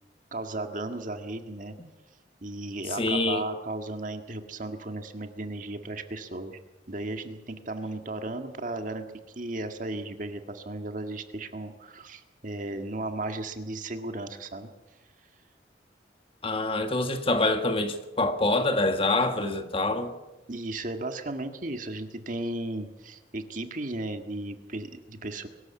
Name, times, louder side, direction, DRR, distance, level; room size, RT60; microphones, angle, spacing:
voice 1, 0.3-1.7 2.4-6.6 6.9-9.1 9.4-14.7 20.5-25.5, right 2 dB, 45° right, 1.8 m, -35 dB
voice 2, 3.0-3.4 16.4-20.1, left 2 dB, 30° left, 1.6 m, -25 dB
23.0 x 13.0 x 8.6 m
head